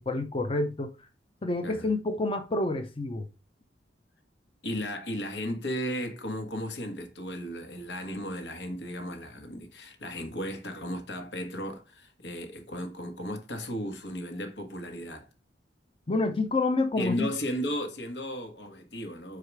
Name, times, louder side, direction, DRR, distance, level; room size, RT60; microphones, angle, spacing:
voice 1, 0.1-0.9 1.4-3.3 16.1-17.3, left 2 dB, 30° left, 0.6 m, -28 dB
voice 2, 4.6-15.3 17.0-19.4, equal, 80° left, 1.6 m, -35 dB
4.8 x 4.8 x 4.7 m
head